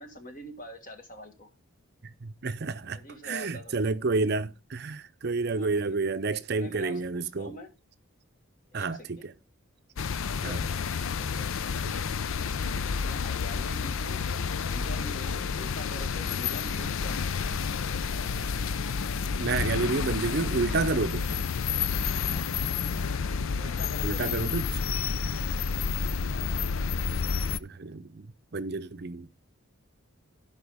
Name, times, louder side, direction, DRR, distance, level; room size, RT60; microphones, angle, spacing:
voice 1, 0.0-1.5 2.9-3.8 5.5-6.0 6.5-7.7 8.7-9.3 10.3-10.7 11.2-11.5 12.9-14.3 14.6-17.5 22.2-22.5 23.6-24.8, left 1 dB, 40° left, 1.7 m, -45 dB
voice 2, 2.2-7.5 8.7-9.3 10.4-10.6 11.8-11.9 19.4-21.3 24.0-24.6 27.6-28.3 28.5-29.3, right 3 dB, 50° right, 0.6 m, -30 dB
sound 1, 10.0-27.6, left 5 dB, 75° left, 0.5 m, -30 dB
16.0 x 5.5 x 3.5 m
head